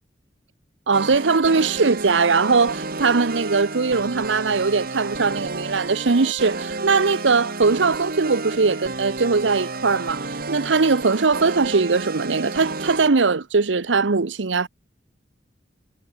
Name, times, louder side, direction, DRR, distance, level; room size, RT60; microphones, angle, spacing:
sound 1, 0.9-13.1, right 3 dB, 55° right, 3.0 m, -31 dB
voice 1, 0.9-14.7, right 4 dB, 85° right, 0.9 m, -20 dB
head